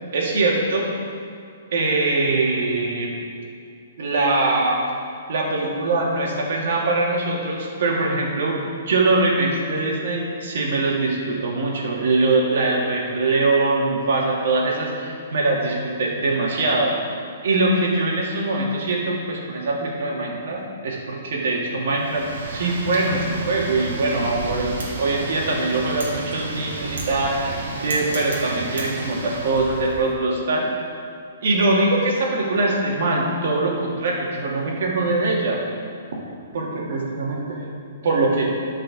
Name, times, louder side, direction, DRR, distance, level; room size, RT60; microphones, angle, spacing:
voice 1, 0.1-0.9 1.7-3.1 4.0-4.8 5.3-17.0 17.4-30.7 31.4-35.6 36.5-37.7 38.0-38.5, right 2 dB, 60° right, -3 dB, 2.8 m, -22 dB
Wind, 21.9-30.1, right 2 dB, 80° right, 2.5 m, -32 dB
12.5 x 5.7 x 6.3 m, 2.4 s
hypercardioid pair, 165°, 0 cm